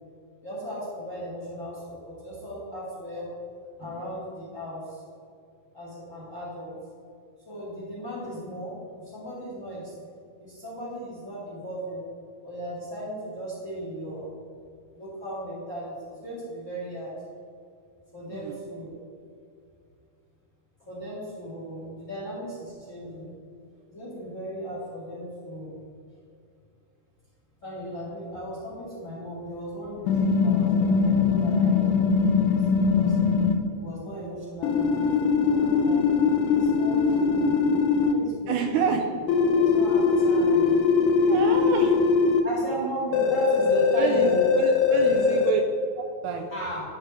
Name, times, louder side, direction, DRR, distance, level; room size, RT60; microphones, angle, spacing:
voice 1, 0.4-3.3 3.8-5.0 5.7-6.7 7.4-10.0 10.4-12.0 12.4-14.3 14.9-17.1 18.1-19.0 20.9-23.3 23.9-25.8 27.6-33.2 33.7-36.0 36.4-37.6 37.9-39.0 39.5-40.7 41.1-41.6 42.4-44.5 45.0-45.4 46.5-46.8, equal, 25° left, -8 dB, 2.1 m, -36 dB
sound 1, 30.1-33.5 34.6-38.1 39.3-42.4 43.1-45.5, left 5 dB, 80° left, 2.0 m, -21 dB
voice 2, 38.5-39.0 41.3-42.0 43.9-45.6 46.0-46.5, right 6 dB, 80° right, 3 dB, 1.8 m, -28 dB
11.0 x 4.9 x 4.4 m, 2.4 s
omnidirectional pair, 4.1 m